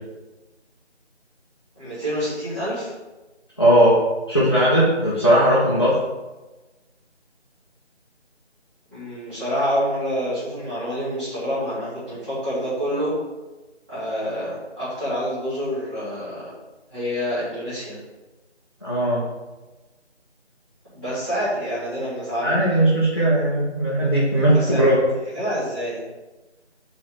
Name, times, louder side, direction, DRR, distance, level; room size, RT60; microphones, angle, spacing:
voice 1, 1.8-2.9 8.9-13.1 13.9-16.5 16.9-18.0 20.9-22.5 24.5-24.8 25.3-26.0, equal, 5° right, -15 dB, 2.0 m, -27 dB
voice 2, 3.6-4.0 4.3-6.0 18.8-19.2 22.4-25.0, right 1 dB, 25° left, -8 dB, 1.1 m, -18 dB
7.8 x 3.8 x 6.2 m, 1.1 s
figure-of-eight pair, 170°, 34 cm